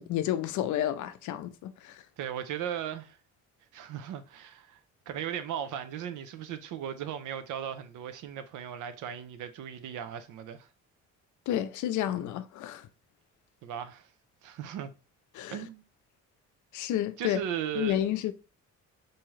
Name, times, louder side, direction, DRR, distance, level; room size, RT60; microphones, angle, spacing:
voice 1, 0.0-2.0 11.5-12.9 15.3-15.6 16.7-17.4 17.8-18.3, left 12 dB, 75° left, 0.5 m, -30 dB
voice 2, 2.2-3.2 3.7-4.8 5.1-10.7 13.6-14.1 14.4-14.9 15.5-15.8 17.2-18.0, right 9 dB, 85° right, 0.6 m, -37 dB
3.6 x 2.8 x 3.1 m
cardioid pair, 90°, 30 cm